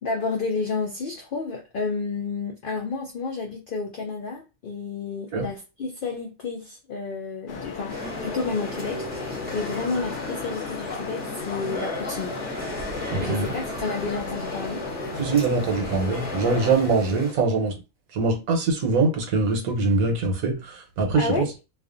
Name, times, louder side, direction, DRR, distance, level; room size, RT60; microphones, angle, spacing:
voice 1, 0.0-8.0 8.2-12.4 13.2-14.8 21.1-21.5, left 4 dB, 85° left, 0.4 m, -30 dB
sound 1, 7.5-16.7, left 5 dB, 65° left, 0.8 m, -35 dB
sound 2, 7.9-17.3, left 1 dB, 10° right, 0.6 m, -35 dB
voice 2, 13.1-13.5 15.2-17.7 18.1-21.5, right 3 dB, 85° right, 1.2 m, -23 dB
2.4 x 2.4 x 2.4 m
omnidirectional pair, 1.4 m